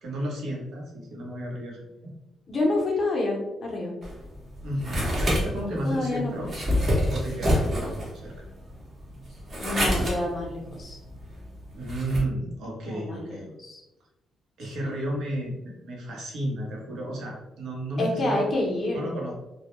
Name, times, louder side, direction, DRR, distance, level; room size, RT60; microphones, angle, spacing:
voice 1, 0.0-2.1 4.6-6.5 7.1-8.3 11.7-13.5 14.6-18.5 18.9-19.3, right 1 dB, 75° right, -2 dB, 0.8 m, -33 dB
voice 2, 2.5-3.9 5.8-6.6 9.6-11.0 12.8-13.3 13.6-13.8 14.6-14.9 18.0-19.2, left 2 dB, 40° left, -1 dB, 0.6 m, -28 dB
sound 1, 4.0-12.2, equal, 40° right, 0.9 m, -28 dB
2.2 x 2.0 x 2.9 m, 0.98 s
cardioid pair, 115°, 0 cm